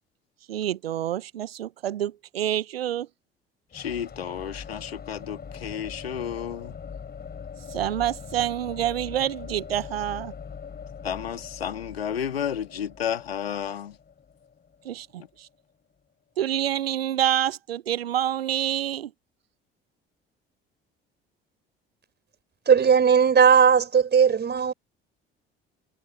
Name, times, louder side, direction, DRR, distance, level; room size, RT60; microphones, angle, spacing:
voice 1, 0.5-3.1 7.7-10.3 14.8-15.5 16.4-19.1, right 11 dB, 80° right, 1.0 m, -27 dB
voice 2, 3.7-6.7 11.0-14.0, left 9 dB, 80° left, 2.8 m, -32 dB
sound 1, 3.7-15.5, left 6 dB, 30° left, 5.5 m, -42 dB
voice 3, 22.7-24.7, right 7 dB, 35° right, 5.2 m, -18 dB
figure-of-eight pair, 55°, 30 cm